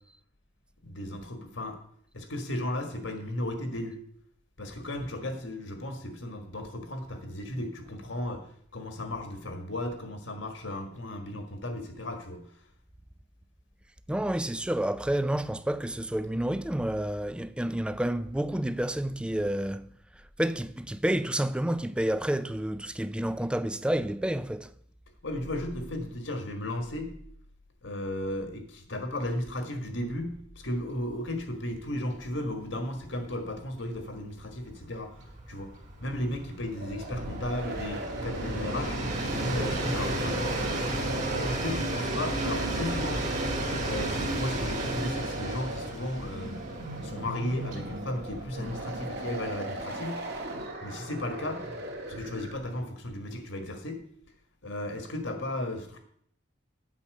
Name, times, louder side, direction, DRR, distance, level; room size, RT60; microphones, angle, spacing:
voice 1, 0.8-1.8 2.1-4.0 4.6-8.4 8.7-12.4 25.2-27.1 27.8-35.7 36.0-39.0 39.2-40.6 41.3-43.2 43.8-46.6 47.0-50.2 50.8-51.6 52.1-54.0 54.6-56.0, left 1 dB, 70° left, 1.7 m, -35 dB
voice 2, 14.1-19.9 20.4-24.7, right 1 dB, 5° right, 0.4 m, -29 dB
Train, 31.3-31.5 31.8-31.9 32.2-49.6, right 1 dB, 40° right, 2.0 m, -34 dB
sound 1, 36.6-52.7, right 1 dB, 55° right, 1.9 m, -38 dB
8.6 x 5.9 x 7.8 m
head